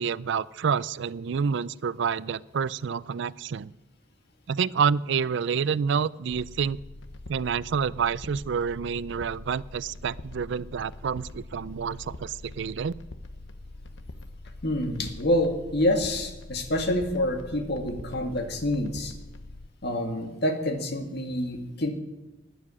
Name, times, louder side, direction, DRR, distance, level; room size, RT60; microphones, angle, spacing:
voice 1, 0.0-3.7 4.5-6.8 7.3-12.9, right 6 dB, 65° right, 20 dB, 0.4 m, -28 dB
sound 1, 6.3-19.7, left 2 dB, 75° left, 1.0 m, -43 dB
voice 2, 14.6-19.1 19.8-21.9, left 1 dB, 60° left, 5 dB, 1.7 m, -27 dB
12.5 x 9.6 x 9.7 m, 1.0 s
head